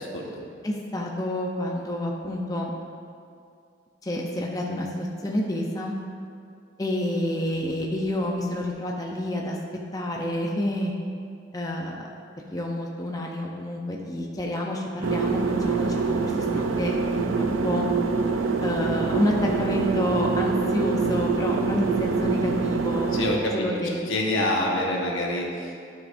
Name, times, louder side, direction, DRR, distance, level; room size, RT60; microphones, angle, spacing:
voice 1, 0.6-2.7 4.0-6.0 6.8-9.6 9.9-10.9 11.5-12.1 12.5-17.9 18.6-23.1 23.5-24.0, left 1 dB, 20° left, -1 dB, 0.5 m, -29 dB
sound 1, 15.0-23.4, right 4 dB, 90° right, 0.5 m, -25 dB
voice 2, 23.1-23.7 24.1-25.8, left 1 dB, 85° left, -1 dB, 1.2 m, -26 dB
11.5 x 6.1 x 2.5 m, 2.4 s
head